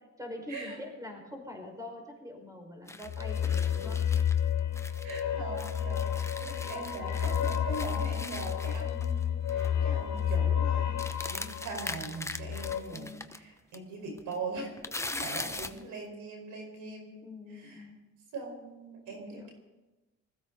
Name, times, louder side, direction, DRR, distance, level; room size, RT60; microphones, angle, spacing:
voice 1, 0.2-4.0 12.9-13.3 15.1-15.5 17.2-18.0 19.3-19.5, left 1 dB, 10° right, 2 dB, 5.2 m, -44 dB
sound 1, 2.9-5.2 5.6-9.2 9.5-9.7 10.0-10.3 11.0-13.4 13.7-13.8 14.2-15.8, left 2 dB, 10° left, 0.9 m, -41 dB
sound 2, 3.1-12.8, left 9 dB, 70° left, 2.4 m, -30 dB
voice 2, 5.0-14.7 15.2-17.1 17.5-17.8 18.3-19.5, right 3 dB, 85° right, 2 dB, 5.0 m, -41 dB
20.5 x 15.5 x 4.1 m, 1.1 s
cardioid pair, 90°, 30 cm